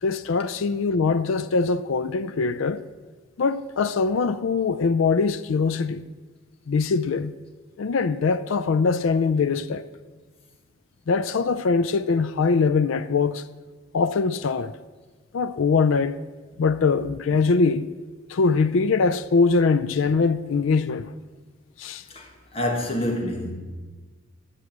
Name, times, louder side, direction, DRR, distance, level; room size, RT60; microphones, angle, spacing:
voice 1, 0.0-2.8 3.4-6.0 6.7-7.3 7.8-9.9 11.1-13.4 13.9-14.7 15.3-16.2 16.6-17.9 18.3-21.1 21.8-22.0, left 4 dB, 70° left, 0.4 m, -22 dB
voice 2, 22.1-23.6, left 1 dB, 30° left, 1.7 m, -27 dB
12.5 x 6.3 x 7.3 m
head